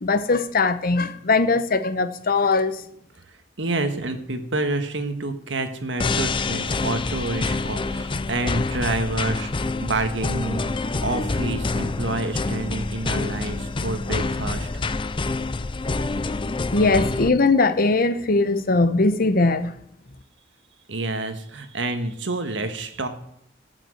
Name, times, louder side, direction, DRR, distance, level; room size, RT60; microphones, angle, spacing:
voice 1, 0.0-2.8 16.7-19.7, left 3 dB, 50° left, 0.9 m, -20 dB
voice 2, 3.6-14.7 20.9-23.1, right 2 dB, 70° right, 1.5 m, -28 dB
sound 1, 6.0-17.3, left 3 dB, 25° left, 0.5 m, -27 dB
14.5 x 6.2 x 7.8 m
head